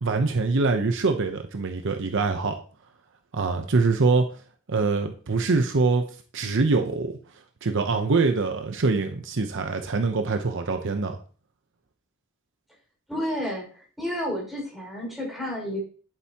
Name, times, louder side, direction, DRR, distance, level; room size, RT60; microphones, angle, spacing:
voice 1, 0.0-2.6 3.3-4.3 4.7-6.0 6.3-7.2 7.6-11.2, right 3 dB, 60° right, 6 dB, 0.7 m, -24 dB
voice 2, 13.1-13.7 14.0-15.8, equal, ahead, -3 dB, 5.2 m, -30 dB
10.5 x 8.9 x 2.9 m, 0.41 s
head